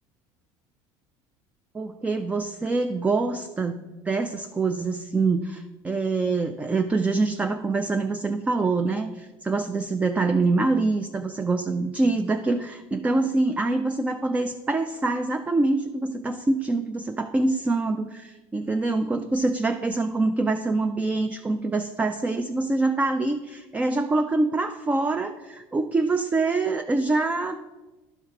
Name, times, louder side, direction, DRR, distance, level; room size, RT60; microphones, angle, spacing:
voice 1, 1.7-27.6, right 3 dB, 15° right, 7 dB, 0.3 m, -25 dB
12.0 x 4.6 x 3.6 m, 1.1 s
cardioid pair, 130°, 10 cm